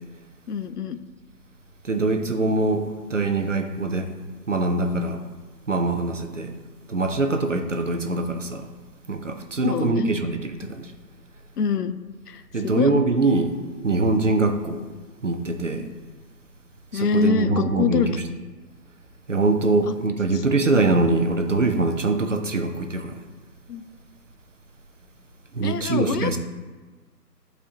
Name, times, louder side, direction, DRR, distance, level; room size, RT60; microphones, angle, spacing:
voice 1, 0.5-1.0 7.3-7.6 9.6-10.3 11.6-12.0 12.3-12.4 12.7-12.9 16.9-18.2 20.3-20.4 23.7-23.8 25.6-26.4, left 6 dB, 70° left, 12 dB, 0.5 m, -25 dB
voice 2, 1.8-4.1 4.5-5.2 5.7-6.5 6.9-8.7 9.1-10.9 12.5-13.5 13.8-14.8 15.2-15.9 16.9-18.2 19.3-23.1 25.5-26.4, right 3 dB, 50° right, 6 dB, 0.5 m, -23 dB
9.9 x 4.3 x 2.7 m, 1.3 s
figure-of-eight pair, 160°, 50 cm